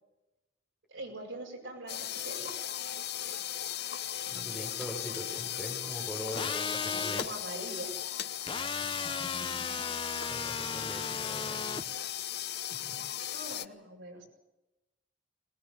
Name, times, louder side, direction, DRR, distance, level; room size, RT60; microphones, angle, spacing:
voice 1, 0.9-2.6 6.9-8.0 13.3-14.2, right 1 dB, 75° right, 1 dB, 7.4 m, -42 dB
sound 1, 1.9-13.7, left 11 dB, 55° left, 0.8 m, -37 dB
voice 2, 4.3-7.3 8.8-9.9 10.3-11.8 12.7-13.0 13.5-13.6, equal, ahead, 1 dB, 5.5 m, -43 dB
sound 2, 6.3-7.3 8.5-11.8, left 5 dB, 25° left, 0.8 m, -36 dB
21.5 x 20.0 x 8.5 m, 1.0 s
head